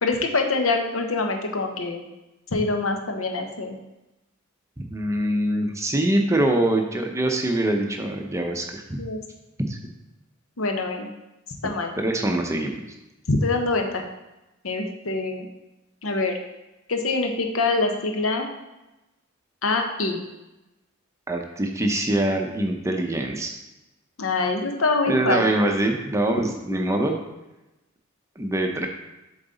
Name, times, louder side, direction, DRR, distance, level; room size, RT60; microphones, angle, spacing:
voice 1, 0.0-2.0 2.5-3.8 8.9-9.2 10.6-11.1 11.6-11.9 13.3-14.0 14.6-15.5 16.0-16.4 16.9-18.5 19.6-20.2 24.2-25.7 26.4-26.5, left 3 dB, 80° left, 4 dB, 0.9 m, -25 dB
voice 2, 4.9-8.8 9.7-9.8 12.0-12.8 21.3-23.6 25.1-27.1 28.4-28.9, right 1 dB, 15° right, 3 dB, 0.6 m, -24 dB
7.4 x 4.0 x 4.0 m, 0.98 s
head